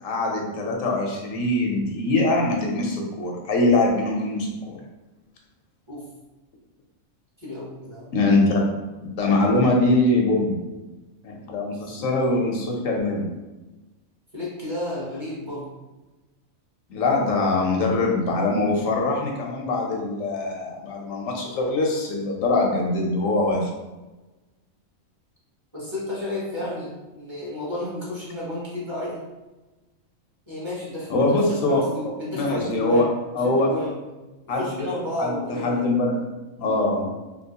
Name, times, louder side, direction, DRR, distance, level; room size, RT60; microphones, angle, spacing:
voice 1, 0.0-4.8 8.1-8.6 9.2-10.6 11.2-13.3 16.9-23.7 31.1-31.8 32.3-33.1 33.3-33.7 34.5-34.9 35.2-35.4 35.6-36.1 36.6-37.1, left 2 dB, 75° left, 0 dB, 1.1 m, -22 dB
voice 2, 7.4-8.1 11.7-12.1 14.3-15.7 25.7-29.2 30.5-33.1 33.4-34.0 34.5-35.9, left 1 dB, 25° right, -9 dB, 1.0 m, -32 dB
2.9 x 2.9 x 2.8 m, 1.1 s
omnidirectional pair, 1.4 m